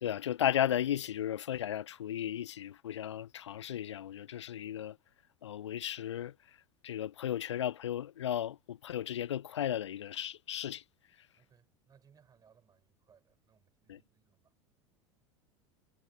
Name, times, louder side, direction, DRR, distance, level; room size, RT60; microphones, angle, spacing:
voice 1, 0.0-5.0 5.4-6.3 6.8-10.8 13.9-14.0, left 11 dB, 70° left, 0.7 m, -35 dB
voice 2, 11.3-14.5, right 7 dB, 25° right, 6.4 m, -66 dB
figure-of-eight pair, 80°, 15 cm